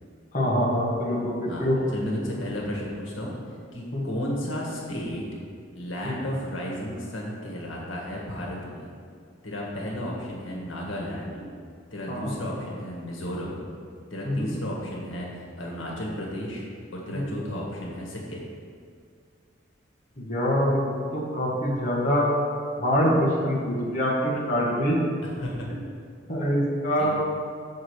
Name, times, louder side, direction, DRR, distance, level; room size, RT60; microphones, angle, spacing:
voice 1, 0.3-1.8 3.9-4.0 6.0-6.1 9.9-10.0 12.1-12.3 14.2-14.5 17.1-17.3 20.2-22.3 22.8-25.0 26.3-27.1, equal, 40° left, -5 dB, 1.5 m, -25 dB
voice 2, 1.4-3.3 3.7-5.3 5.7-8.9 9.4-11.4 11.9-13.6 14.1-15.3 15.6-16.6 16.9-18.4 25.2-25.7 27.0-27.1, equal, 80° left, -3 dB, 1.6 m, -33 dB
6.6 x 5.0 x 6.3 m, 2.2 s
head